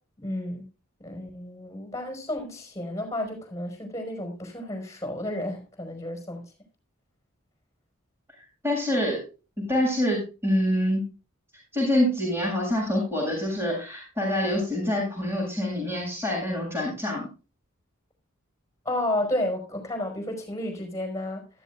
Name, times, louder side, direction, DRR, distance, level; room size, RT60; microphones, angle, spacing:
voice 1, 0.2-0.7 1.0-6.4 18.8-21.5, left 1 dB, 15° left, 4.9 m, -32 dB
voice 2, 8.6-9.2 9.6-11.1 11.7-17.3, left 1 dB, 15° right, 7.2 m, -26 dB
15.0 x 14.0 x 2.4 m
head